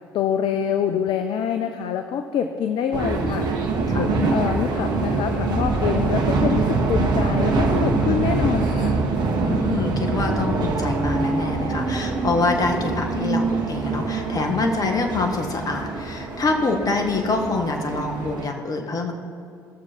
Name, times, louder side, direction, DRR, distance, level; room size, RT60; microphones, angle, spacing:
voice 1, 0.1-3.5 3.9-9.0, left 8 dB, 55° left, 7 dB, 0.6 m, -25 dB
sound 1, 2.9-18.5, right 3 dB, 45° right, 1.4 m, -24 dB
voice 2, 9.4-19.1, left 3 dB, 40° left, 3 dB, 1.7 m, -25 dB
18.0 x 6.9 x 4.5 m, 2.4 s
figure-of-eight pair, 55°, 10 cm